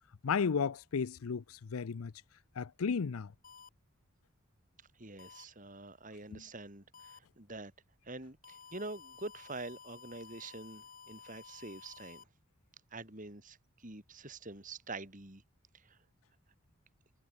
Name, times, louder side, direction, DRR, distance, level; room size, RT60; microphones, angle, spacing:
voice 1, 0.2-2.1 2.6-3.3 6.3-6.4, left 6 dB, 80° left, 0.5 m, -34 dB
sound 1, 3.4-3.7 5.2-5.4 6.9-7.2 8.4-12.2, left 6 dB, 40° left, 3.7 m, -54 dB
voice 2, 5.0-7.7 8.0-12.3 12.9-15.4 15.7-16.0, right 2 dB, 35° right, 3.5 m, -46 dB
head